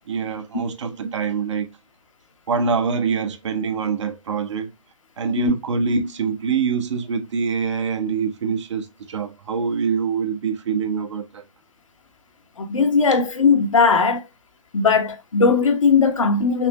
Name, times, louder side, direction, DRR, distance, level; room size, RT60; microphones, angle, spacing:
voice 1, 0.0-1.7 2.5-4.7 5.2-11.4, right 5 dB, 65° right, 1.2 m, -25 dB
voice 2, 12.6-14.2 14.7-16.7, left 5 dB, 85° left, 1.2 m, -18 dB
5.9 x 2.2 x 2.8 m
hypercardioid pair, 135°, 16 cm